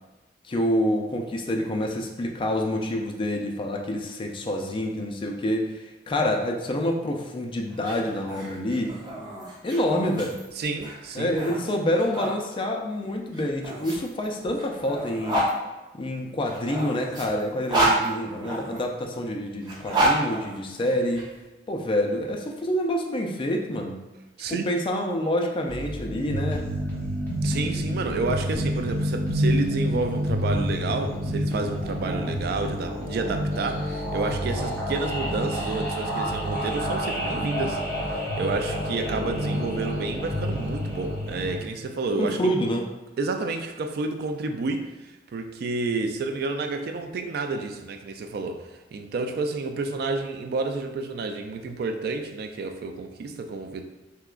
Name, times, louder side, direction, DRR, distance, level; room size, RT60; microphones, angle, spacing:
voice 1, 0.5-8.9 9.6-10.4 11.1-15.5 15.9-21.3 21.7-24.0 24.5-26.6 42.2-42.9, left 1 dB, 30° left, 2 dB, 0.4 m, -27 dB
sound 1, 7.7-12.4 13.3-15.5 16.4-18.8 19.6-21.2, right 1 dB, 25° right, 0.8 m, -29 dB
voice 2, 10.6-11.4 24.4-24.7 27.4-37.8 38.1-42.4 43.2-53.8, right 3 dB, 60° right, 5 dB, 0.3 m, -30 dB
sound 2, 25.7-41.6, equal, 15° left, 0.9 m, -28 dB
3.5 x 2.9 x 2.4 m, 1.1 s
head